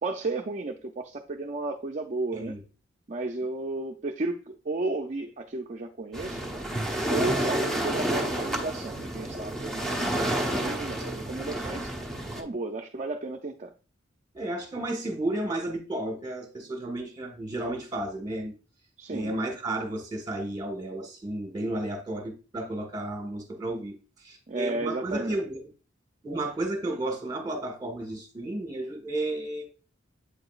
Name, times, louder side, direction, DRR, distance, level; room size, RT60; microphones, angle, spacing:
voice 1, 0.0-2.6 3.1-6.4 7.1-11.9 12.4-13.7 19.0-19.3 24.5-25.4, right 2 dB, 40° right, 0.5 m, -33 dB
Waves surf, 6.1-12.4, right 1 dB, 5° left, 1.0 m, -30 dB
voice 2, 10.1-11.1 14.3-18.5 19.1-24.0 24.2-25.7 26.2-29.6, right 1 dB, 20° right, 1.5 m, -33 dB
8.4 x 4.9 x 2.4 m
head